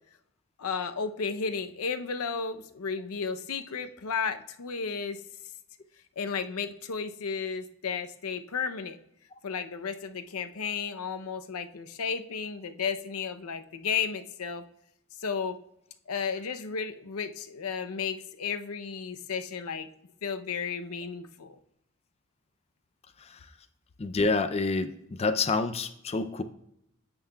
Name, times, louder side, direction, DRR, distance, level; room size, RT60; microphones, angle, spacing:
voice 1, 0.6-5.2 6.2-9.0 9.4-14.6 15.2-15.6 16.1-19.9 20.2-21.6, left 6 dB, 85° left, 9 dB, 0.6 m, -33 dB
voice 2, 24.0-26.4, left 3 dB, 30° left, 9 dB, 0.4 m, -28 dB
15.5 x 5.6 x 2.3 m, 0.77 s
head